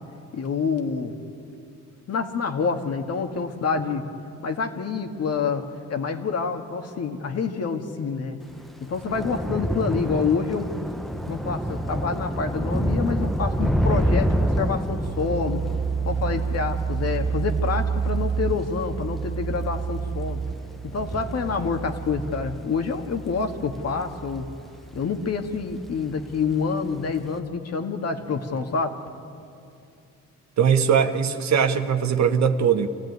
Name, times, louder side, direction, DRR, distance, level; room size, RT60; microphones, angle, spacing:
voice 1, 0.3-1.1 2.1-4.0 4.4-5.6 5.9-8.4 8.8-10.7 11.3-15.6 16.1-20.4 20.8-24.5 24.9-28.9, left 5 dB, 55° left, 5 dB, 1.9 m, -27 dB
Thunder / Rain, 8.5-25.1 25.4-25.9 26.1-26.3, equal, ahead, 0.9 m, -29 dB
sound 1, 11.1-26.5, right 6 dB, 35° right, 0.6 m, -31 dB
voice 2, 30.6-32.9, right 7 dB, 65° right, 8 dB, 1.3 m, -20 dB
26.0 x 15.5 x 9.5 m, 2.6 s
cardioid pair, 90°, 30 cm